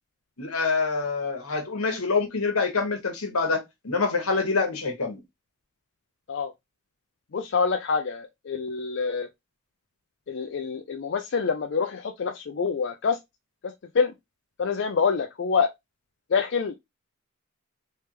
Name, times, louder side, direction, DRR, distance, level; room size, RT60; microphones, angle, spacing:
voice 1, 0.4-5.2, left 4 dB, 80° left, 1.2 m, -26 dB
voice 2, 7.3-9.3 10.3-13.2 13.6-14.1 14.6-15.7 16.3-16.8, left 5 dB, 55° left, 0.4 m, -26 dB
3.4 x 3.3 x 2.9 m
head